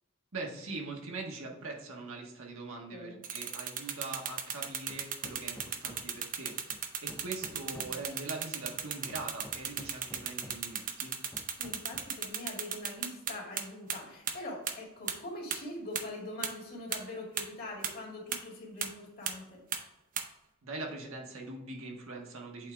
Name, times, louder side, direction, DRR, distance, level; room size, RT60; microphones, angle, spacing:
voice 1, 0.3-11.1 20.6-22.7, right 3 dB, 85° right, 0 dB, 1.4 m, -42 dB
voice 2, 2.9-3.2 7.7-8.0 11.6-19.6, left 1 dB, 50° left, -1 dB, 2.0 m, -43 dB
sound 1, 3.2-13.6 13.9-14.0 14.3-14.4 14.7-14.8 15.1-15.2 15.5-15.6 15.9-16.0 16.4-16.5 16.9-17.0 17.4-17.5 17.8-17.9 18.3-18.4 18.8-18.9 19.3-19.4 19.7-19.8 20.2-20.3, right 8 dB, 40° right, 0.6 m, -34 dB
Hammer, 4.9-6.3 6.7-8.1 8.7-10.8 11.3-12.3, left 1 dB, 10° left, 0.5 m, -52 dB
8.2 x 3.8 x 3.3 m, 0.99 s
head